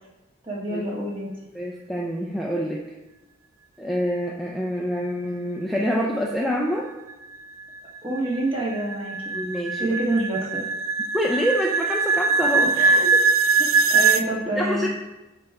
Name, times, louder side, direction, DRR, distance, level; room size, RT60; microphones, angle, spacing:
voice 1, 0.4-1.3 8.0-9.3 9.8-10.6 12.6-13.1 13.9-14.9, right 1 dB, 25° right, -5 dB, 1.8 m, -27 dB
voice 2, 1.5-2.8 3.8-6.9 9.3-9.9 11.1-12.7 13.1-13.2 14.6-14.9, equal, ahead, -2 dB, 0.5 m, -26 dB
sound 1, 7.1-14.3, right 4 dB, 80° right, 0.4 m, -22 dB
12.0 x 4.5 x 3.6 m, 1.0 s
head